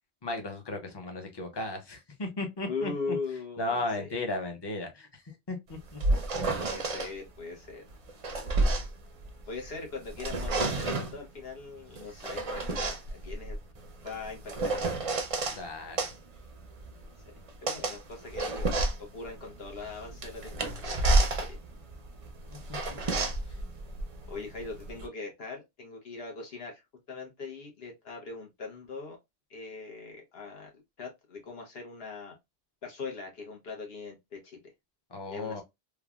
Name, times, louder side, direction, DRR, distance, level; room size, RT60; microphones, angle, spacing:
voice 1, 0.2-3.2 3.6-5.2 5.5-6.0 15.5-16.0 22.5-23.0 35.1-35.6, left 2 dB, 30° left, 0.6 m, -35 dB
voice 2, 2.7-4.1 6.6-7.8 9.5-13.6 14.0-14.9 17.6-18.6 19.0-21.6 24.3-26.8 27.1-29.2 29.5-30.7 31.0-32.3 32.8-34.6 35.3-35.6, left 4 dB, 70° left, 1.2 m, -40 dB
sound 1, 5.7-7.1 7.9-9.7 10.1-11.2 12.0-15.6 16.0-25.1, right 2 dB, 45° right, 0.5 m, -30 dB
3.2 x 2.2 x 2.3 m
omnidirectional pair, 1.1 m